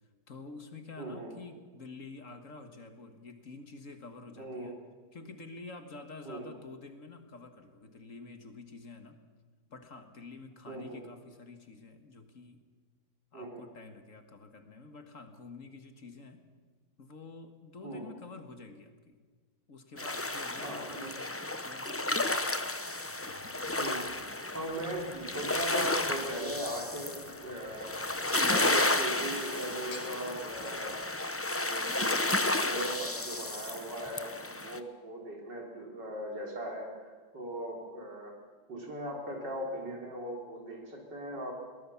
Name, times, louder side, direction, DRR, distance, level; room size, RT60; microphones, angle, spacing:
voice 1, 0.3-4.8 5.1-9.2 9.7-12.6 13.3-16.4 17.0-19.2 19.7-21.3 21.6-22.5, left 3 dB, 50° left, 7 dB, 1.9 m, -48 dB
voice 2, 1.0-1.3 4.4-4.7 6.2-6.4 10.7-11.0 13.3-13.6 17.8-18.1 20.6-21.1 23.7-24.0 24.5-31.0 31.4-38.4 38.7-41.5, right 1 dB, 90° right, 0 dB, 4.7 m, -39 dB
sound 1, 20.0-34.8, left 2 dB, 20° left, 0.3 m, -32 dB
Gurgling / Chink clink / Liquid, 22.9-29.0 29.7-30.1, left 4 dB, 75° left, 2.7 m, -54 dB
22.5 x 18.5 x 7.1 m, 1.5 s
omnidirectional pair, 1.8 m